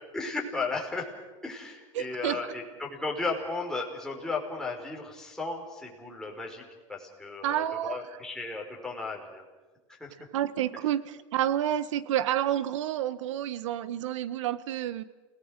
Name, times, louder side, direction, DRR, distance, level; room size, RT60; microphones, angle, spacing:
voice 1, 0.1-1.1 1.4-6.6 6.9-9.4 9.9-10.3, left 3 dB, 5° left, -2 dB, 5.4 m, -35 dB
voice 2, 1.9-2.4 7.4-8.0 10.3-15.0, right 11 dB, 80° right, 16 dB, 1.2 m, -29 dB
28.5 x 19.0 x 6.6 m, 1.2 s
hypercardioid pair, 110°, 16 cm